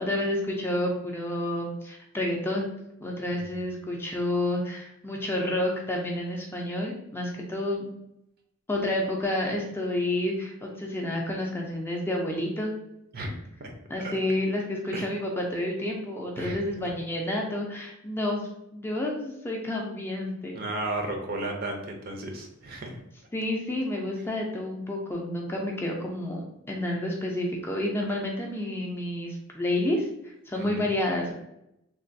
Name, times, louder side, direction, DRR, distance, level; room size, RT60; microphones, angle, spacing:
voice 1, 0.0-2.7 3.0-7.9 8.7-12.7 13.9-20.6 23.3-31.3, left 1 dB, 10° left, -1 dB, 0.3 m, -30 dB
voice 2, 20.5-23.0 30.6-30.9, right 2 dB, 45° right, 3 dB, 0.5 m, -34 dB
3.2 x 2.2 x 2.6 m, 0.82 s
head